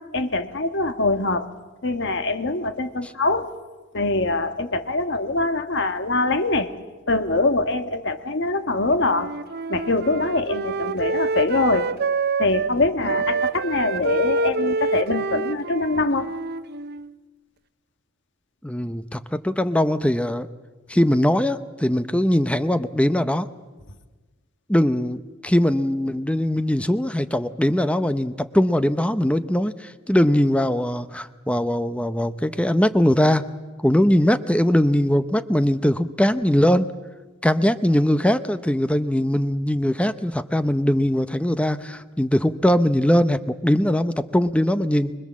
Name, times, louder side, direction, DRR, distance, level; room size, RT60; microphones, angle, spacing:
voice 1, 0.0-1.5 1.8-3.5 3.9-6.7 7.1-9.3 9.7-11.9 12.4-16.3, left 2 dB, 60° left, 9 dB, 1.6 m, -23 dB
Wind instrument woodwind instrument, 9.0-12.8 13.0-17.2, right 3 dB, 55° right, 0.7 m, -26 dB
voice 2, 18.6-20.5 20.9-23.5 24.7-33.4 33.8-36.9 37.4-45.1, equal, 5° left, 12 dB, 0.7 m, -21 dB
25.0 x 21.5 x 7.5 m, 1.3 s
head